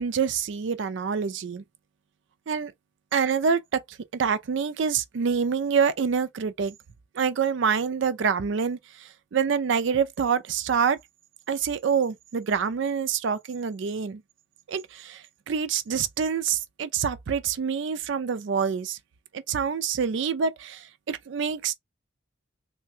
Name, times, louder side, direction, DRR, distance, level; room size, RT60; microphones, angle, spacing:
voice 1, 0.0-1.6 2.5-2.7 3.1-6.7 7.1-11.0 11.5-14.2 14.7-19.0 19.3-21.7, right 6 dB, 60° right, 0.4 m, -26 dB
3.2 x 2.2 x 2.7 m
head